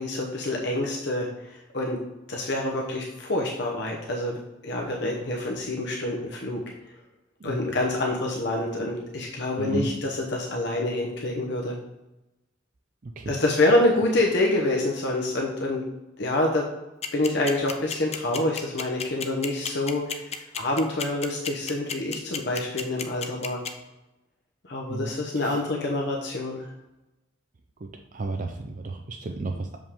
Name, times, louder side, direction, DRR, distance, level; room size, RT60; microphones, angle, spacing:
voice 1, 0.0-2.0 2.3-6.6 7.4-11.7 13.3-15.8 16.2-16.7 17.1-23.6 24.6-26.7, left 2 dB, 65° left, -1 dB, 0.9 m, -27 dB
voice 2, 9.6-9.9 13.0-13.4 24.9-25.1 25.4-25.5 27.8-29.8, right 3 dB, 45° right, 4 dB, 0.5 m, -33 dB
sound 1, 17.0-23.7, left 7 dB, 35° left, 0.6 m, -31 dB
6.5 x 5.2 x 3.6 m, 1.0 s
head